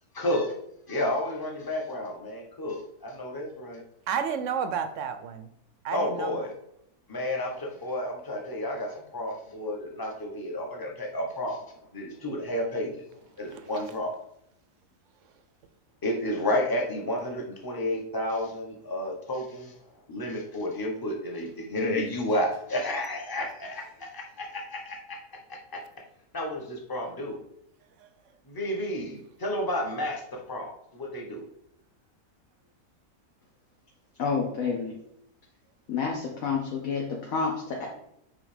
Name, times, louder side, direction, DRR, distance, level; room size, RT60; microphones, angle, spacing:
voice 1, 0.1-0.5 0.9-3.8 5.9-6.5 7.1-12.9 13.4-14.1 16.0-19.7 20.1-25.2 25.5-25.8 26.3-27.4 28.5-31.4, left 1 dB, 15° left, 0 dB, 0.9 m, -31 dB
voice 2, 4.1-5.5 5.8-6.4 13.5-13.6 28.0-28.1, right 7 dB, 65° right, 9 dB, 0.9 m, -31 dB
voice 3, 34.2-34.9 35.9-37.9, left 5 dB, 65° left, 0 dB, 1.3 m, -29 dB
7.4 x 3.3 x 5.0 m, 0.75 s
omnidirectional pair, 1.6 m